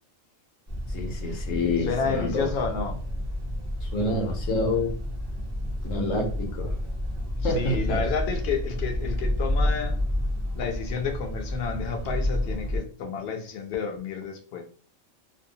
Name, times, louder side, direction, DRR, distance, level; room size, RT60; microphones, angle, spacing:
sound 1, 0.7-12.8, left 1 dB, 15° right, 0.6 m, -30 dB
voice 1, 0.9-2.5 3.8-5.0 5.8-6.8 7.4-8.0, left 2 dB, 80° left, 1.1 m, -28 dB
voice 2, 1.8-3.0 7.4-10.0 10.5-14.6, left 5 dB, 60° left, 0.8 m, -30 dB
2.7 x 2.1 x 2.6 m
omnidirectional pair, 1.3 m